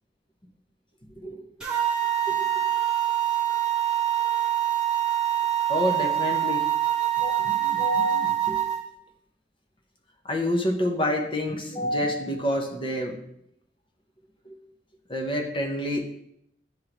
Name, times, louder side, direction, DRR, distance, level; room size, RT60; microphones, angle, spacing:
sound 1, 1.6-8.8, right 12 dB, 5° right, 1.1 m, -25 dB
voice 1, 5.7-6.7 7.2-8.6 10.2-13.1 14.5-14.6 15.1-16.0, left 1 dB, 30° left, 2 dB, 0.9 m, -28 dB
10.5 x 3.8 x 3.0 m, 0.72 s
head